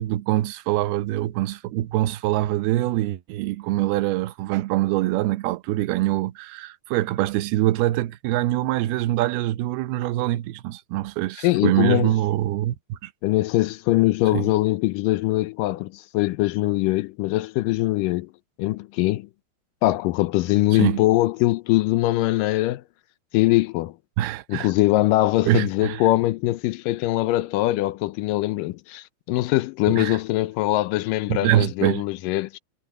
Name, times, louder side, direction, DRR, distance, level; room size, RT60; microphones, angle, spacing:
voice 1, 0.0-13.1 14.3-14.5 20.7-21.0 24.2-24.7 25.5-26.0 29.9-30.2 31.3-32.0, right 15 dB, 85° right, 2.8 m, -24 dB
voice 2, 11.4-12.1 13.2-18.3 18.6-19.3 19.8-22.8 23.3-23.9 24.5-32.6, left 17 dB, 80° left, 2.0 m, -22 dB
omnidirectional pair, 4.4 m